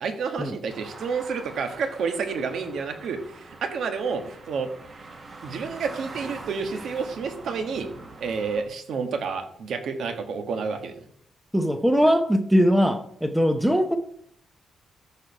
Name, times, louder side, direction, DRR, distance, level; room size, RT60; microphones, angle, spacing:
voice 1, 0.0-4.7 5.4-7.9 8.2-10.9, right 5 dB, 65° right, 6 dB, 1.4 m, -30 dB
sound 1, 0.7-8.6, right 3 dB, 30° right, 1.4 m, -43 dB
voice 2, 11.5-14.0, equal, 5° right, 7 dB, 0.7 m, -21 dB
13.5 x 4.5 x 5.4 m, 0.66 s
wide cardioid pair, 165°, 0 cm